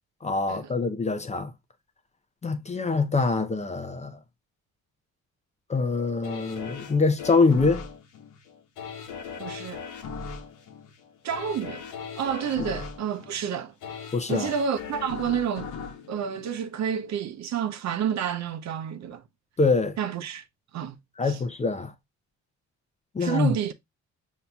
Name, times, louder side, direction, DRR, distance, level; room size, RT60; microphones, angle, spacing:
voice 1, 0.2-1.5 2.4-4.2 5.7-7.8 12.6-12.7 14.1-14.5 19.6-20.0 21.2-21.9 23.1-23.5, left 4 dB, 25° left, 0.5 m, -24 dB
sound 1, 6.2-17.2 17.6-17.7, left 6 dB, 85° left, 0.9 m, -39 dB
voice 2, 9.4-9.8 11.2-11.8 12.2-13.7 14.3-15.7 16.1-19.2 20.0-20.4 20.7-21.0 21.2-21.4 23.2-23.7, right 8 dB, 65° right, 0.7 m, -29 dB
5.7 x 2.8 x 2.2 m
cardioid pair, 90°, 30 cm